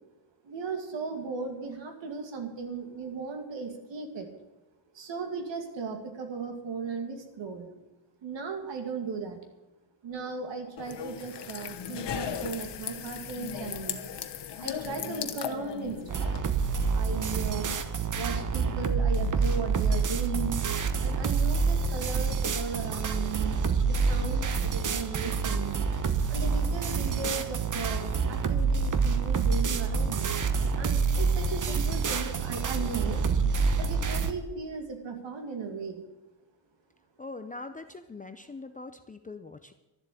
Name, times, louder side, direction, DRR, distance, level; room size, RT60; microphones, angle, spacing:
voice 1, 0.4-4.3 4.9-7.7 8.2-9.4 10.0-14.1 14.6-16.2 16.9-17.8 18.1-20.6 21.0-25.9 26.3-30.3 30.8-33.2 33.8-36.0, right 5 dB, 75° right, 4 dB, 2.4 m, -36 dB
sound 1, 10.8-16.4, left 8 dB, 65° left, 1.2 m, -37 dB
sound 2, 16.1-34.3, right 5 dB, 45° right, 1.0 m, -27 dB
voice 2, 37.2-39.7, left 3 dB, 20° left, 8 dB, 0.5 m, -42 dB
12.5 x 7.7 x 9.9 m, 0.99 s
wide cardioid pair, 175°, 44 cm